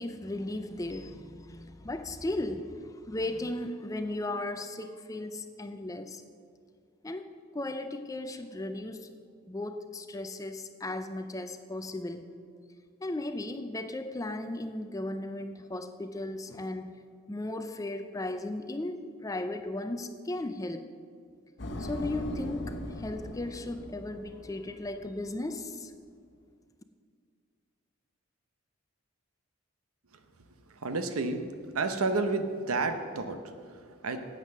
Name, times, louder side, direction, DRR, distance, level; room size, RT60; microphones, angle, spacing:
voice 1, 0.0-6.2 7.0-9.1 9.5-12.3 13.0-16.9 17.3-20.9 21.8-25.9, left 2 dB, 15° left, 9 dB, 0.4 m, -36 dB
sound 1, 21.6-25.3, left 1 dB, 50° left, 1.0 m, -40 dB
voice 2, 30.7-31.5 31.7-34.3, right 3 dB, 85° right, 8 dB, 0.9 m, -31 dB
9.4 x 8.2 x 6.6 m, 2.1 s
head